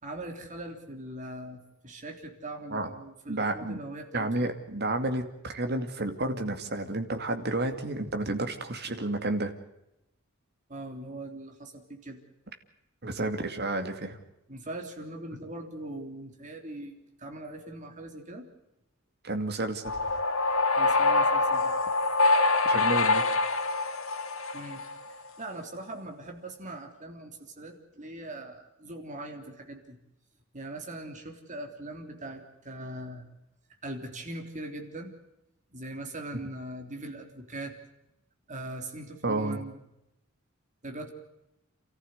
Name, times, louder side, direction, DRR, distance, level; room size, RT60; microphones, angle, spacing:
voice 1, 0.0-4.3 10.7-12.2 14.5-18.5 20.7-21.7 24.5-24.8 25.1-30.0 30.5-33.3 33.8-35.1 35.7-37.7 38.5-39.8 40.8-41.1, right 1 dB, 40° right, 4 dB, 3.4 m, -41 dB
voice 2, 3.3-3.8 4.1-9.5 13.0-14.2 19.2-19.9 22.6-23.2 39.2-39.6, right 2 dB, 55° right, 6 dB, 2.4 m, -31 dB
sound 1, 19.9-25.1, left 3 dB, 80° left, 2.6 m, -25 dB
28.5 x 14.5 x 8.0 m, 0.88 s
head